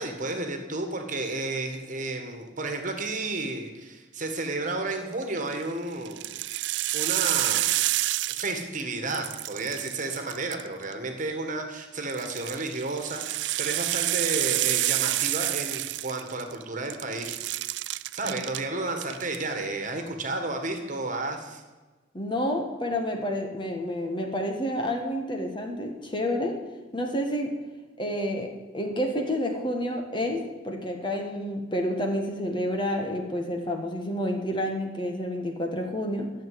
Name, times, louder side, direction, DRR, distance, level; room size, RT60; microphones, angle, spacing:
voice 1, 0.0-6.3 6.9-7.9 8.3-17.3 18.1-21.6, right 2 dB, 45° right, 5 dB, 1.8 m, -32 dB
sound 1, 5.2-5.6 6.0-8.8 9.1-10.9 12.1-16.6 16.9-18.6 19.0-19.4, right 17 dB, 65° right, 0.4 m, -28 dB
voice 2, 22.1-26.6 26.9-27.6 28.0-36.3, equal, 25° left, 3 dB, 1.5 m, -29 dB
12.0 x 7.2 x 9.4 m, 1.2 s
head